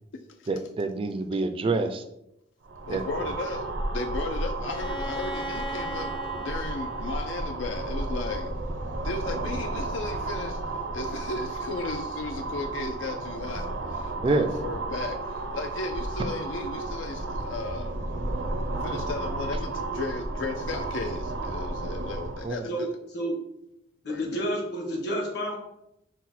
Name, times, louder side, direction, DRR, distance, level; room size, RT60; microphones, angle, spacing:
voice 1, 0.5-2.0 2.9-3.3 14.2-14.5 22.4-22.7, right 3 dB, 30° right, 8 dB, 0.3 m, -27 dB
sound 1, 2.6-22.5, right 2 dB, 85° right, 0.6 m, -33 dB
voice 2, 2.9-3.6 3.9-8.5 9.0-18.0 18.8-22.9 24.1-24.4, left 3 dB, 80° left, 5 dB, 0.4 m, -35 dB
Bowed string instrument, 4.7-8.4, equal, 25° left, 0.6 m, -39 dB
voice 3, 22.7-23.4 24.0-25.6, equal, 60° left, -1 dB, 1.4 m, -30 dB
6.0 x 2.1 x 4.1 m, 0.80 s
head